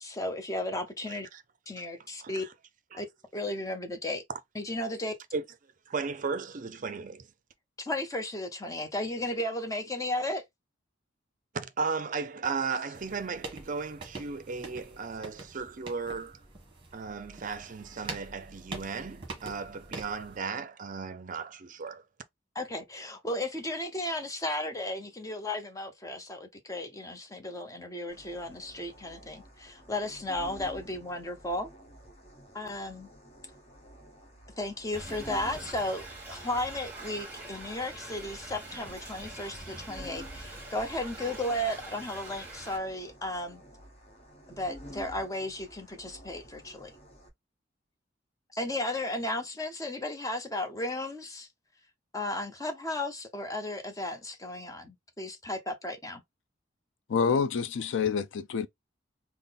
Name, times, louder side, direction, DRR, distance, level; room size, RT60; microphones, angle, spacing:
voice 1, 0.0-1.3 1.7-2.4 2.9-3.1 3.3-4.2 4.5-5.1 7.8-10.4 22.5-31.7 32.5-33.1 34.6-43.6 44.6-46.9 48.5-51.5 52.1-56.2, left 1 dB, 15° left, 0.6 m, -34 dB
voice 2, 5.9-7.3 11.5-16.4 16.9-22.0, right 4 dB, 40° right, 0.4 m, -35 dB
sound 1, 12.9-20.4, right 3 dB, 25° right, 1.1 m, -45 dB
sound 2, 28.1-47.3, equal, 35° left, 1.1 m, -51 dB
Thunder / Rain, 34.9-42.8, right 2 dB, 10° right, 1.6 m, -44 dB
voice 3, 57.1-58.7, left 6 dB, 70° left, 0.4 m, -27 dB
3.7 x 2.0 x 3.9 m
head